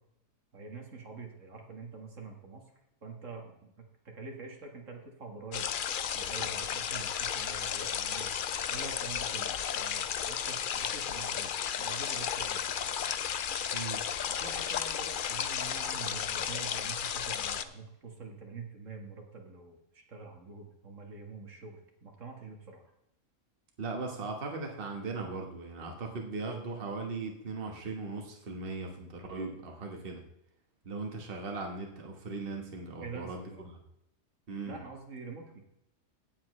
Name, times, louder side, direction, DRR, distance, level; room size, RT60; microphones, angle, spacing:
voice 1, 0.5-2.7 3.0-5.7 6.1-8.3 8.7-12.7 14.3-22.9 33.0-33.7 34.6-35.6, right 4 dB, 75° right, 2 dB, 2.0 m, -46 dB
sound 1, 5.5-17.6, left 8 dB, 55° left, 0.6 m, -33 dB
voice 2, 23.8-30.2 30.8-33.8 34.5-34.8, right 3 dB, 45° right, 2 dB, 1.6 m, -38 dB
16.5 x 7.3 x 3.2 m, 0.83 s
omnidirectional pair, 1.3 m